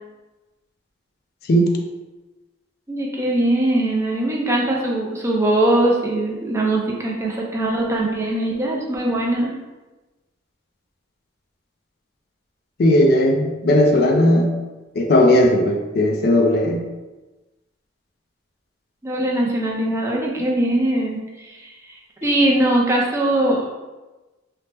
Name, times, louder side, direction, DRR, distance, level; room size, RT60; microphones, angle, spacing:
voice 1, 2.9-9.5 19.0-22.0 22.2-23.7, right 1 dB, 15° right, -2 dB, 0.4 m, -21 dB
voice 2, 12.8-14.5 15.0-16.8, left 1 dB, 55° left, 2 dB, 0.4 m, -16 dB
2.8 x 2.1 x 3.2 m, 1.1 s
head